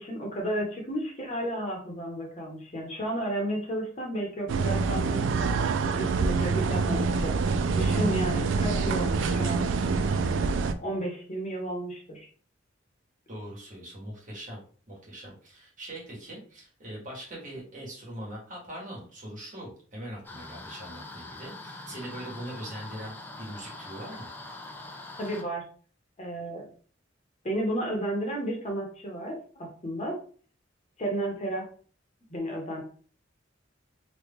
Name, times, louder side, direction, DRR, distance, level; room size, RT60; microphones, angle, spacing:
voice 1, 0.0-5.2 6.0-7.3 7.8-9.6 10.8-12.3 25.2-25.6 26.2-26.6 27.4-30.2 31.0-31.7 32.3-32.8, right 1 dB, 35° left, 1 dB, 0.9 m, -32 dB
sound 1, 4.5-10.7, right 4 dB, 70° right, 0.3 m, -26 dB
voice 2, 13.3-14.6 14.9-24.3, right 1 dB, 45° right, -4 dB, 1.4 m, -41 dB
sound 2, 20.2-25.4, left 2 dB, 10° left, 0.4 m, -43 dB
3.1 x 2.3 x 3.5 m, 0.44 s
head